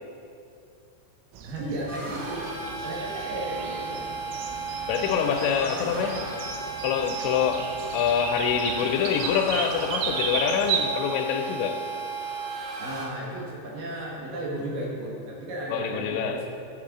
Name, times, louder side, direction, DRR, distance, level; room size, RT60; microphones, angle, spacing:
sound 1, 1.3-10.8, right 6 dB, 80° right, 3.2 m, -35 dB
voice 1, 1.4-2.5 2.8-4.0 5.0-6.1 12.8-16.5, right 1 dB, 65° right, -4 dB, 2.4 m, -34 dB
sound 2, 1.9-13.0, right 4 dB, 45° right, 3.7 m, -35 dB
Bowed string instrument, 3.4-9.4, equal, 45° left, 0.3 m, -48 dB
voice 2, 4.9-6.2 6.8-11.8 15.7-16.4, left 7 dB, 80° left, 6 dB, 2.8 m, -26 dB
13.5 x 8.2 x 3.7 m, 2.6 s
omnidirectional pair, 5.5 m